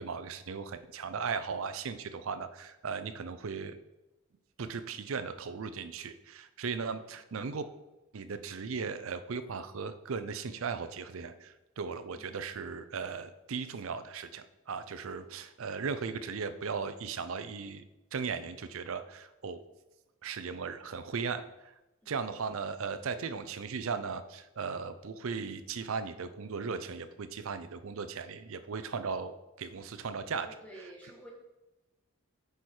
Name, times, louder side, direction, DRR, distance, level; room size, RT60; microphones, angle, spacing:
voice 1, 0.0-3.8 4.6-7.7 8.1-17.8 18.1-19.6 20.2-21.4 22.1-30.5, right 5 dB, 70° right, 11 dB, 0.5 m, -37 dB
voice 2, 30.4-31.3, right 1 dB, 5° left, -2 dB, 1.4 m, -51 dB
8.0 x 4.8 x 4.4 m, 1.0 s
head